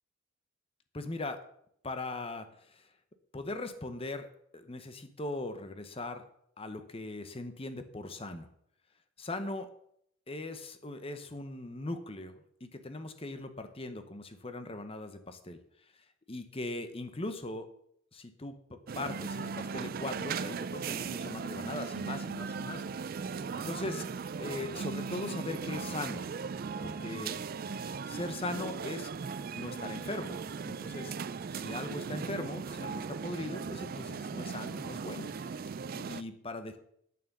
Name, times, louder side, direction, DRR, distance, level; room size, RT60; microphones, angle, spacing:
voice 1, 0.9-1.4 1.8-2.5 2.7-2.8 3.3-4.3 4.5-6.2 6.6-8.5 9.2-9.7 10.3-12.3 12.6-15.6 16.3-17.7 18.1-24.1 24.4-26.2 26.8-27.4 28.1-29.1 29.5-31.1 31.5-35.6 35.9-36.8, left 2 dB, 25° left, 9 dB, 0.9 m, -40 dB
sound 1, 18.9-36.2, right 5 dB, 40° right, 0.3 m, -38 dB
8.6 x 7.6 x 6.7 m, 0.71 s
head